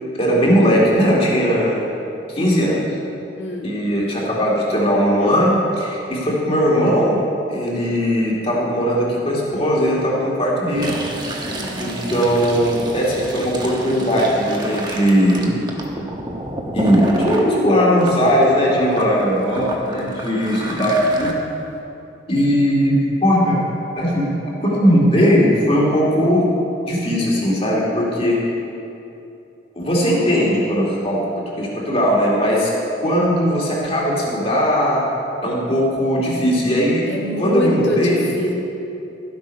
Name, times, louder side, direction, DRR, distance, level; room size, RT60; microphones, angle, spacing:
voice 1, 0.1-1.8 2.3-2.8 3.6-7.2 7.5-11.0 11.8-15.6 16.7-21.3 22.3-23.6 24.0-24.3 24.6-26.5 26.8-28.4 29.8-31.3 31.6-32.7 33.0-35.0 35.4-37.1 37.4-38.2, equal, 35° left, -4 dB, 2.4 m, -18 dB
Fill (with liquid), 10.7-17.5 18.0-21.3, right 1 dB, 25° right, 1.1 m, -29 dB
voice 2, 11.4-12.2 37.1-38.5, equal, 90° left, -3 dB, 1.9 m, -24 dB
13.5 x 8.1 x 5.4 m, 2.8 s
head